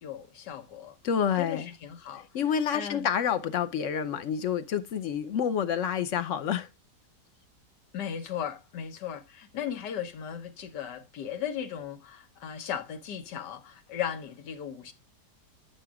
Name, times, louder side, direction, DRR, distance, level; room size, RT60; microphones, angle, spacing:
voice 1, 0.0-1.0 1.4-2.3 2.7-3.1 7.9-14.9, left 9 dB, 80° left, 1.6 m, -36 dB
voice 2, 1.0-1.7 2.3-6.7, left 8 dB, 60° left, 0.9 m, -28 dB
9.4 x 7.8 x 2.3 m
omnidirectional pair, 1.8 m